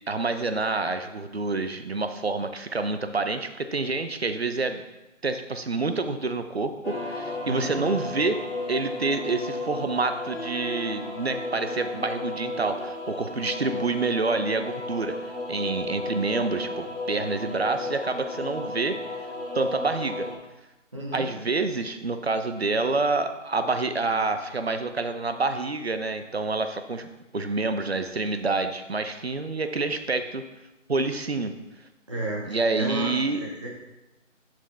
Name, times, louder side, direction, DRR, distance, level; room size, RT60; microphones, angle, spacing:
voice 1, 0.1-4.8 5.2-8.4 8.7-15.2 15.5-19.0 19.5-20.3 21.1-27.1 27.3-30.4 30.9-31.5 32.5-33.4, right 3 dB, 55° right, 9 dB, 0.8 m, -27 dB
sound 1, 6.8-20.3, left 2 dB, 55° left, 3.3 m, -34 dB
voice 2, 7.4-7.8 20.9-21.3 32.1-33.7, right 1 dB, 25° right, -4 dB, 1.4 m, -32 dB
11.5 x 6.2 x 3.4 m, 1.0 s
figure-of-eight pair, 175°, 39 cm